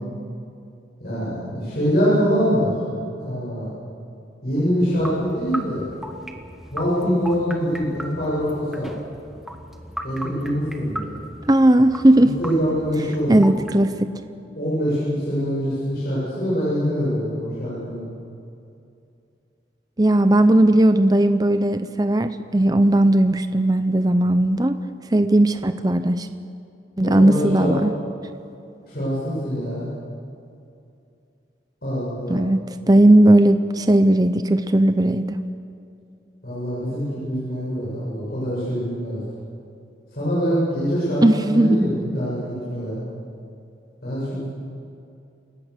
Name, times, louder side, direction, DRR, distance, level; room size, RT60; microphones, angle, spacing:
voice 1, 1.0-2.7 3.2-3.7 4.4-5.8 6.7-8.9 10.0-11.0 12.2-13.5 14.5-18.1 27.0-27.7 28.9-29.9 31.8-32.4 36.4-39.2 40.1-43.0 44.0-44.5, equal, 55° left, -9 dB, 7.8 m, -24 dB
sound 1, 4.8-13.7, equal, ahead, 1.3 m, -37 dB
voice 2, 11.5-12.3 13.3-14.1 20.0-24.8 25.1-26.3 27.0-27.9 32.3-32.6 32.9-35.4 41.2-41.9, right 1 dB, 20° right, 10 dB, 0.6 m, -17 dB
28.5 x 17.5 x 6.7 m, 2.6 s
head